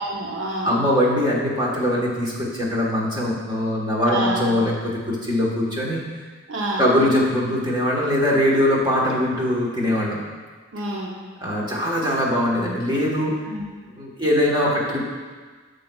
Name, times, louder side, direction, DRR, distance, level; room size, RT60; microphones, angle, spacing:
voice 1, 0.0-0.8 4.0-4.4 6.5-6.9 10.7-11.2 13.5-13.7, right 1 dB, 70° right, -1 dB, 0.8 m, -28 dB
voice 2, 0.6-6.0 6.8-10.2 11.4-13.3 13.9-15.0, left 1 dB, 20° right, -4 dB, 1.3 m, -21 dB
10.5 x 6.6 x 2.3 m, 1.5 s
head